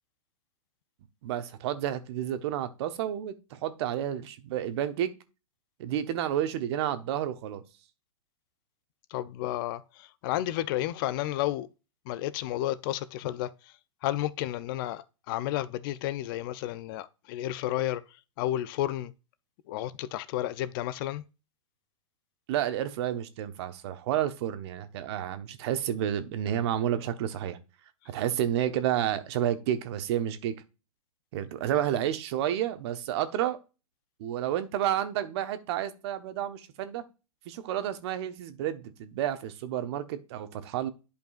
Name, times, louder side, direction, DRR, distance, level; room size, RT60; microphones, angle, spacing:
voice 1, 1.2-5.1 5.8-7.6 22.5-27.6 28.0-30.6 31.3-33.6 34.2-37.0 37.5-40.9, right 11 dB, 50° right, 1.1 m, -30 dB
voice 2, 9.1-11.7 12.1-13.7 14.0-18.0 18.4-19.1 19.7-21.2, left 14 dB, 40° left, 0.4 m, -32 dB
11.5 x 5.2 x 2.4 m
hypercardioid pair, 135°, 18 cm